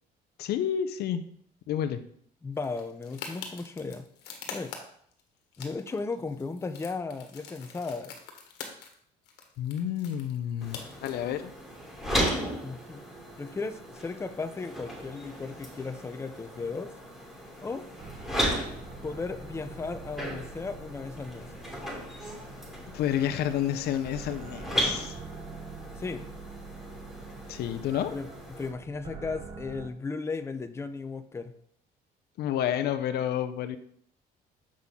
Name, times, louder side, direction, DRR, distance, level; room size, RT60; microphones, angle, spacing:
voice 1, 0.4-1.2 1.7-2.0 9.6-11.5 22.9-25.1 27.5-28.1 32.4-33.8, left 10 dB, 70° left, 10 dB, 0.6 m, -30 dB
voice 2, 2.4-4.1 4.5-4.7 5.6-8.1 12.6-13.0 13.4-16.9 17.6-17.9 19.0-21.5 26.0-26.2 28.1-31.5, left 4 dB, 15° left, 9 dB, 0.6 m, -35 dB
sound 1, 2.6-5.2 5.5-9.0 9.2-11.1, left 6 dB, 90° left, 1.4 m, -44 dB
sound 2, 10.6-28.7, equal, ahead, 3.0 m, -36 dB
sound 3, 18.0-29.9, right 3 dB, 30° right, 1.0 m, -45 dB
7.5 x 5.8 x 3.7 m, 0.63 s
cardioid pair, 110°, 17 cm